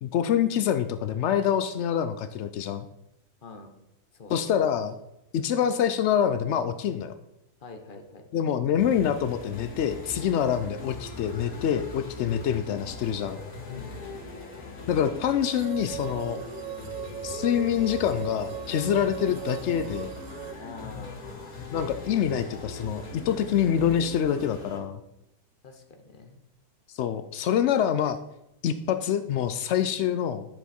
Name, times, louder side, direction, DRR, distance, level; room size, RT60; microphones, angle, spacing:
voice 1, 0.0-2.9 4.3-5.0 5.3-7.1 8.3-13.4 14.9-16.4 17.2-20.1 21.7-25.0 26.9-28.2 28.6-30.5, left 9 dB, 80° left, 10 dB, 0.6 m, -26 dB
voice 2, 3.4-3.7 4.1-4.5 7.6-8.4 13.7-14.2 20.6-21.5 25.6-26.4, left 3 dB, 35° left, 5 dB, 1.1 m, -46 dB
sound 1, 8.8-24.8, left 3 dB, 60° left, 2.2 m, -40 dB
sound 2, 15.4-20.5, right 13 dB, 65° right, 0.9 m, -38 dB
10.0 x 6.9 x 4.3 m, 0.84 s
omnidirectional pair, 1.7 m